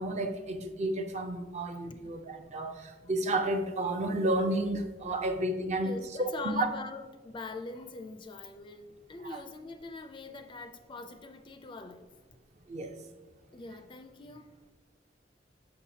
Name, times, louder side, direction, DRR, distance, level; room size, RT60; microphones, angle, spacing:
voice 1, 0.0-5.9 6.2-6.7 9.2-9.4 12.7-12.9, right 1 dB, 40° right, 7 dB, 0.5 m, -31 dB
voice 2, 5.6-12.1 13.5-14.5, left 3 dB, 25° left, 7 dB, 0.3 m, -43 dB
6.6 x 5.6 x 2.7 m, 1.2 s
head